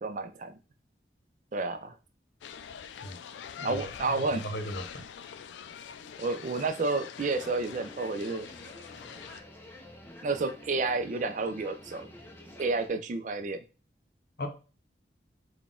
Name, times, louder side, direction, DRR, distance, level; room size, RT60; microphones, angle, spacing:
voice 1, 0.0-0.6 1.5-1.9 3.6-4.4 6.2-8.5 10.2-12.1 12.6-13.6, right 3 dB, 45° right, 8 dB, 0.4 m, -30 dB
sound 1, 2.4-9.4, left 8 dB, 85° left, 0.3 m, -45 dB
voice 2, 4.1-5.1 14.4-14.5, equal, 60° left, 4 dB, 0.7 m, -37 dB
sound 2, 7.2-12.9, left 1 dB, 10° left, 0.5 m, -49 dB
3.9 x 2.3 x 3.6 m, 0.33 s
head